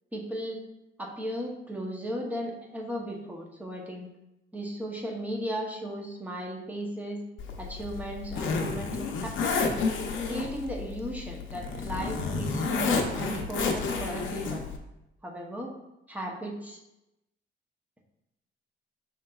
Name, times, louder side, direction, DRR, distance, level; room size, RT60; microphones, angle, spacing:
voice 1, 0.1-0.6 1.0-4.1 4.5-7.2 7.6-9.8 10.3-14.6 15.2-15.7 16.1-16.8, right 1 dB, 5° right, 0 dB, 0.7 m, -36 dB
Zipper (clothing), 7.4-14.8, left 4 dB, 70° left, 0.6 m, -31 dB
5.3 x 3.8 x 2.3 m, 0.93 s
cardioid pair, 125°, 21 cm